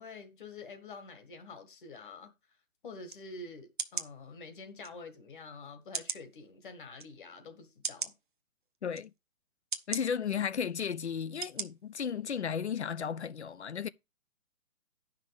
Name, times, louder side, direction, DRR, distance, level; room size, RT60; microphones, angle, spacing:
voice 1, 0.0-2.3 2.8-8.1, left 3 dB, 35° left, 1.7 m, -47 dB
sound 1, 3.1-3.2 3.8-4.1 4.8-4.9 5.9-6.3 7.0-7.1 7.8-8.1 8.9-9.1 9.7-10.0 10.7-10.9 11.4-11.7 12.1-12.2, right 5 dB, 35° right, 0.6 m, -36 dB
voice 2, 9.9-13.9, left 7 dB, 50° left, 0.5 m, -34 dB
10.5 x 5.8 x 4.8 m
hypercardioid pair, 170°, 44 cm